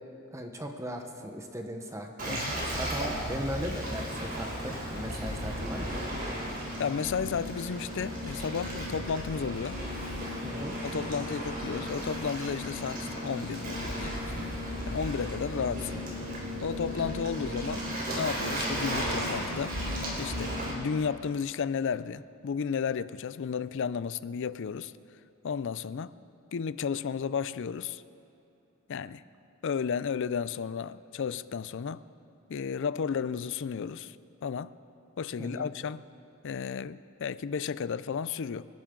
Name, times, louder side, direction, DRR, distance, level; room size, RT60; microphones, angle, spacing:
voice 1, 0.3-6.1 10.4-10.7 35.4-35.7, equal, 15° right, 1.0 m, -38 dB
Waves surf, 2.2-20.7, equal, 45° right, 4.1 m, -34 dB
voice 2, 6.8-9.8 10.8-14.5 14.9-16.1 16.6-17.9 18.2-19.8 20.2-24.9 25.4-26.1 26.5-28.0 28.9-29.2 29.6-32.1 32.5-34.2 34.4-34.7 35.2-36.0 36.4-38.7, left 6 dB, 60° left, 0.4 m, -33 dB
28.0 x 12.0 x 3.8 m
head